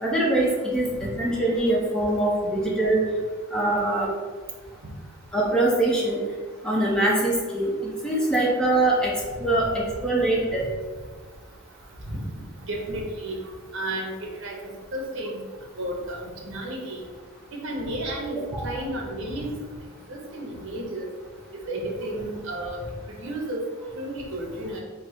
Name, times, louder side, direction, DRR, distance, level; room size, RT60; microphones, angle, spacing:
voice 1, 0.0-3.0 3.5-4.1 5.3-6.2 6.6-9.1 9.4-10.7, right 1 dB, 5° left, -5 dB, 0.7 m, -23 dB
voice 2, 12.6-13.4 13.7-14.1 14.4-15.4 15.8-17.0 17.5-19.5 20.1-21.1 21.5-22.8 23.1-23.6 23.9-24.8, right 1 dB, 60° right, -1 dB, 0.8 m, -32 dB
3.2 x 2.0 x 4.1 m, 1.4 s
head